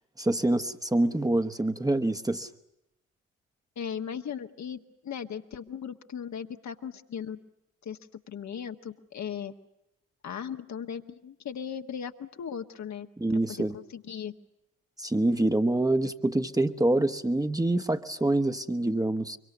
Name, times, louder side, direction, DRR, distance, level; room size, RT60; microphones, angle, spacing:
voice 1, 0.2-2.5 13.2-13.7 15.0-19.4, right 1 dB, 10° right, 7 dB, 1.4 m, -26 dB
voice 2, 3.7-7.4 7.8-8.0 8.3-9.5 10.2-13.1 13.6-14.3, left 8 dB, 45° left, 6 dB, 1.6 m, -37 dB
25.0 x 24.5 x 6.9 m, 0.87 s
figure-of-eight pair, 45°, 39 cm